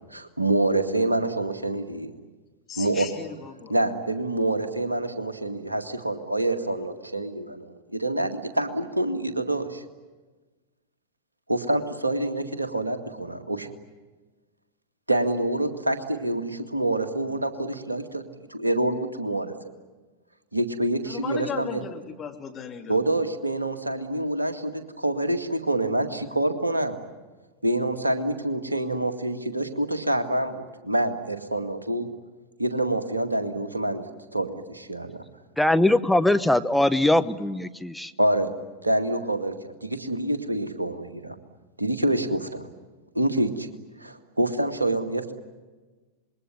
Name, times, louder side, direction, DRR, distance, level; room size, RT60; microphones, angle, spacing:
voice 1, 0.1-2.1 2.8-3.1 3.7-9.8 11.5-13.7 15.1-18.2 18.5-19.5 20.5-21.8 22.9-27.0 27.6-32.1 32.6-34.0 34.3-35.2 38.2-38.5 38.8-41.4 41.8-42.7 43.2-43.7 44.0-45.3, right 1 dB, 85° right, 7 dB, 2.0 m, -26 dB
voice 2, 2.7-3.7 21.0-23.0, left 7 dB, 25° left, 2 dB, 3.1 m, -36 dB
voice 3, 35.6-38.1, left 1 dB, ahead, 9 dB, 0.9 m, -21 dB
27.0 x 21.5 x 9.6 m, 1.3 s
figure-of-eight pair, 90°, 0 cm